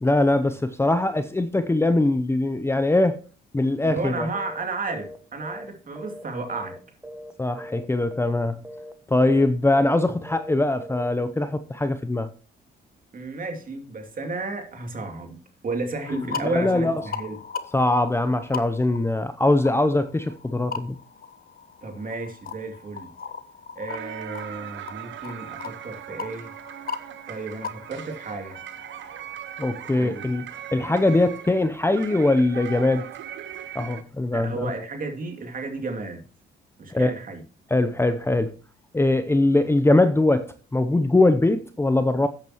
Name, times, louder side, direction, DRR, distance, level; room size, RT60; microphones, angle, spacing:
voice 1, 0.0-3.2 3.5-4.3 7.4-8.6 9.1-12.3 16.2-17.0 17.7-21.0 29.6-33.1 33.7-34.7 36.9-37.1 37.7-38.5 38.9-42.3, left 2 dB, 10° left, 0.7 m, -22 dB
voice 2, 3.8-6.7 13.1-15.4 15.6-17.4 21.8-23.1 23.8-26.5 27.3-28.6 30.0-30.3 34.3-36.2 36.8-37.4, right 3 dB, 45° right, 2.7 m, -33 dB
sound 1, 4.3-4.6 4.9-5.2 5.4-6.8 7.0-7.3 7.6-7.9 8.1-8.4 8.6-8.9 9.2-9.5 9.7-10.0 10.3-10.5 10.8-11.1, equal, 10° right, 1.2 m, -40 dB
sound 2, 16.0-29.4, left 6 dB, 50° left, 1.1 m, -39 dB
sound 3, 23.9-34.0, right 10 dB, 70° right, 0.9 m, -39 dB
12.5 x 8.8 x 3.0 m
cardioid pair, 90°, 20 cm